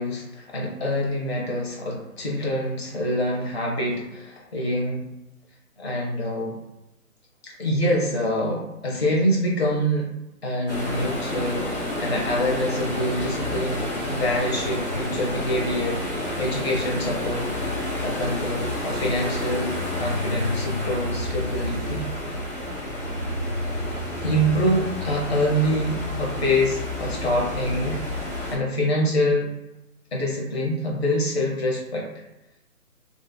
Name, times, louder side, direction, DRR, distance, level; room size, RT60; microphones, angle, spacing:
voice 1, 0.0-5.0 5.8-6.6 7.4-10.1 10.4-17.5 18.0-22.1 24.2-29.5 30.1-32.1, equal, 45° left, -2 dB, 1.0 m, -25 dB
sound 1, 10.7-28.5, left 1 dB, 15° left, 0.8 m, -29 dB
3.1 x 2.5 x 2.2 m, 0.94 s
hypercardioid pair, 165°, 44 cm